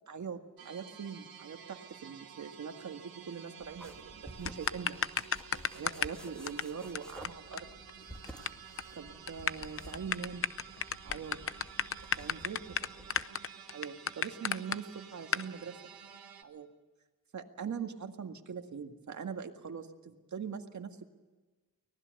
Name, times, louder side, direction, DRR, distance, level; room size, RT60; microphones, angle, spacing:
voice 1, 0.1-5.0 5.7-7.7 8.6-10.5 11.0-11.4 12.2-12.9 13.7-15.8 16.4-16.7 17.3-21.1, right 6 dB, 55° right, 5 dB, 1.9 m, -42 dB
sound 1, 0.6-16.4, right 8 dB, 80° right, 1.5 m, -52 dB
sound 2, 3.6-13.2, equal, ahead, 2.3 m, -52 dB
sound 3, 4.5-6.2 6.5-6.6 7.0-7.1 7.3-7.4 7.6-7.7 7.9-8.5 8.8-8.9 9.3-14.8 15.3-15.5, left 7 dB, 40° left, 0.7 m, -32 dB
24.5 x 19.0 x 6.6 m, 1.3 s
wide cardioid pair, 120°, 35 cm